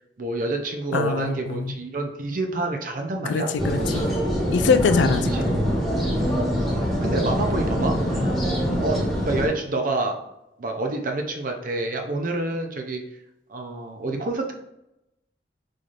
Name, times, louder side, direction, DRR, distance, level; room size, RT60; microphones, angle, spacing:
voice 1, 0.2-3.5 5.3-5.4 6.7-8.3 8.8-10.2 10.6-13.0 13.5-14.5, right 2 dB, 50° right, 3 dB, 0.6 m, -28 dB
voice 2, 0.9-1.8 3.3-4.1 4.5-5.6, left 4 dB, 90° left, 9 dB, 0.4 m, -23 dB
sound 1, 3.6-9.5, equal, ahead, 1.3 m, -24 dB
4.0 x 3.2 x 2.5 m, 0.88 s
head